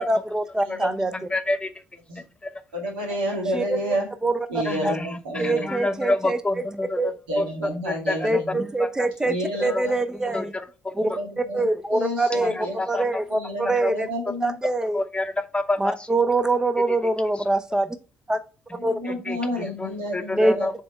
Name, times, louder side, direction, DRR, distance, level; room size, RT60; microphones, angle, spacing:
voice 1, 0.0-1.1 3.5-3.8 4.2-4.3 4.8-4.9 5.4-6.6 7.0-7.1 8.2-9.3 9.6-10.5 10.9-12.5 12.9-14.1 14.4-15.0 15.8-18.0 18.3-18.4 18.8-19.0 20.3-20.5, right 2 dB, 15° right, 10 dB, 0.7 m, -24 dB
voice 2, 0.6-1.3 2.1-2.2 2.7-4.1 4.5-5.6 7.3-8.6 9.2-10.0 10.3-10.4 11.0-11.6 11.9-12.8 13.3-14.5 18.8-20.7, equal, 85° right, 0 dB, 2.2 m, -30 dB
voice 3, 1.3-1.7 5.4-6.5 9.7-9.8 12.9-13.0 13.8-13.9 15.0-15.9 19.3-19.4 20.3-20.7, left 2 dB, 20° left, 9 dB, 0.9 m, -25 dB
7.2 x 3.7 x 4.3 m, 0.33 s
hypercardioid pair, 45°, 5 cm